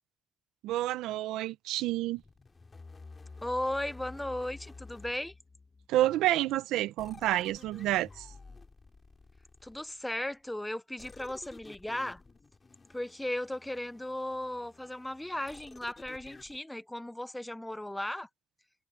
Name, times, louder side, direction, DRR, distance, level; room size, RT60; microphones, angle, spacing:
voice 1, 0.6-2.2 5.9-8.2, right 15 dB, 85° right, 0.7 m, -29 dB
sound 1, 2.2-5.9 7.0-10.0 11.0-16.6, left 3 dB, 25° left, 3.0 m, -52 dB
voice 2, 3.4-5.3 9.6-12.2 12.9-18.3, left 1 dB, 5° left, 0.7 m, -36 dB
cardioid pair, 115°, 0 cm